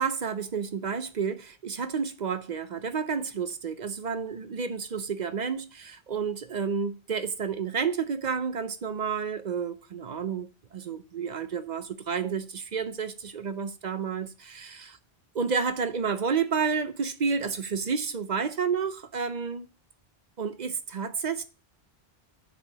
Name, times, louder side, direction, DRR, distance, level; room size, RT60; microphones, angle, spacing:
voice 1, 0.0-14.9 15.4-19.7 20.4-21.4, right 6 dB, 50° right, 0.6 m, -30 dB
6.8 x 4.6 x 4.9 m
omnidirectional pair, 1.1 m